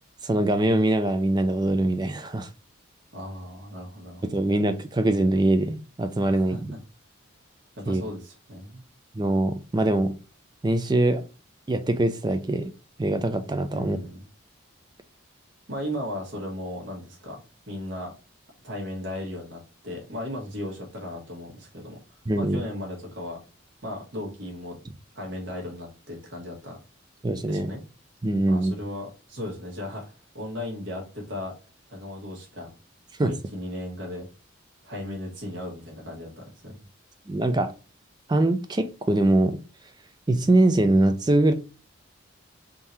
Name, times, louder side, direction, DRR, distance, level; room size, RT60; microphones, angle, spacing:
voice 1, 0.2-2.5 4.2-6.7 7.9-8.0 9.1-10.2 10.6-11.2 11.7-12.7 13.0-14.0 22.3-22.6 27.2-27.7 28.2-28.8 33.2-33.4 37.3-37.7 38.3-39.6 40.3-41.5, right 1 dB, 20° right, 0.4 m, -23 dB
voice 2, 3.1-4.2 6.3-6.6 7.8-8.8 13.7-14.2 15.7-17.4 17.7-18.1 18.6-22.0 22.3-23.4 23.8-24.8 25.1-26.8 27.4-27.8 28.5-31.5 31.9-32.7 33.2-34.3 34.8-36.8, left 1 dB, 60° right, 1.3 m, -36 dB
3.7 x 2.7 x 4.3 m
head